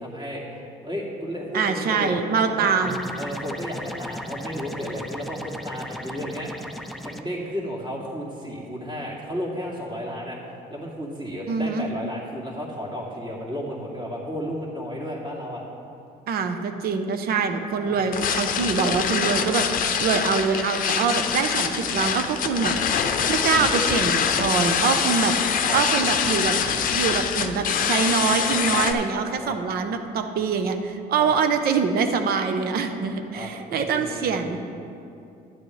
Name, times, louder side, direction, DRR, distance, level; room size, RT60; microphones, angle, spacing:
voice 1, 0.0-2.7 3.2-6.5 7.0-10.4 10.7-15.6 17.8-18.2 22.0-22.1 25.7-25.8 29.4-29.6 31.2-31.3 33.3-34.6, equal, 25° right, -5 dB, 2.4 m, -33 dB
voice 2, 1.5-3.0 11.5-11.9 16.3-25.3 25.7-26.5 26.9-34.6, right 5 dB, 65° right, 7 dB, 0.8 m, -24 dB
sound 1, 2.8-7.2, equal, ahead, 0.5 m, -36 dB
sound 2, 18.1-28.9, left 7 dB, 55° left, 0.6 m, -24 dB
11.5 x 10.0 x 3.2 m, 2.6 s
cardioid pair, 110°, 17 cm